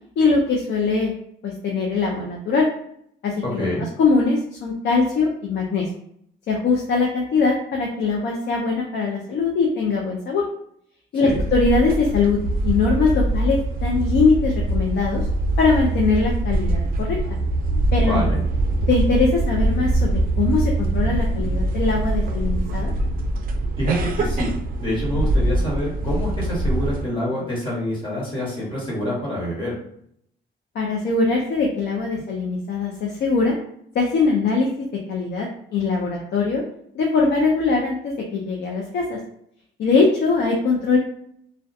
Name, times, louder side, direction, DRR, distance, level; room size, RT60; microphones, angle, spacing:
voice 1, 0.2-1.1 1.4-2.7 3.2-3.6 4.0-5.8 6.5-10.4 11.1-15.2 15.6-17.2 17.9-18.2 18.9-22.9 30.7-33.5 33.9-36.6 36.9-39.2 39.8-41.0, left 4 dB, 60° left, -1 dB, 0.5 m, -21 dB
voice 2, 3.4-3.9 11.2-11.4 18.0-18.4 23.8-24.5 24.8-29.8, equal, 25° left, -6 dB, 1.3 m, -26 dB
sound 1, 11.3-27.0, right 2 dB, 45° right, 0.4 m, -23 dB
2.3 x 2.2 x 2.6 m, 0.70 s
cardioid pair, 90°, 20 cm